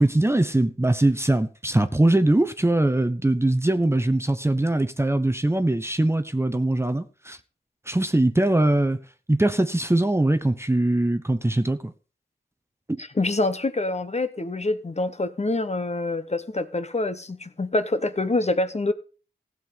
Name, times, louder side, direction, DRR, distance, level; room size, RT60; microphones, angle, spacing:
voice 1, 0.0-7.4 7.9-9.0 9.3-11.9, right 1 dB, 15° right, 0.9 m, -22 dB
voice 2, 13.0-18.9, left 2 dB, 35° left, 1.2 m, -26 dB
16.0 x 7.8 x 5.3 m
wide cardioid pair, 85°, 19 cm